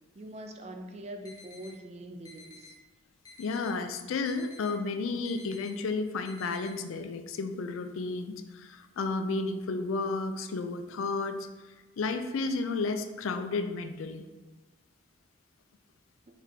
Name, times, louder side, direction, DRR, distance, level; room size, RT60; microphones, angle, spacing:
voice 1, 0.1-2.7, right 1 dB, 35° right, 4 dB, 0.4 m, -43 dB
sound 1, 1.2-1.7 2.2-2.7 3.2-3.7 4.2-4.7 5.2-5.7 6.2-6.7, left 3 dB, 20° left, 0.5 m, -51 dB
voice 2, 3.4-11.5 12.0-14.2, left 3 dB, 85° left, 8 dB, 0.4 m, -32 dB
4.5 x 4.0 x 2.8 m, 1.2 s
head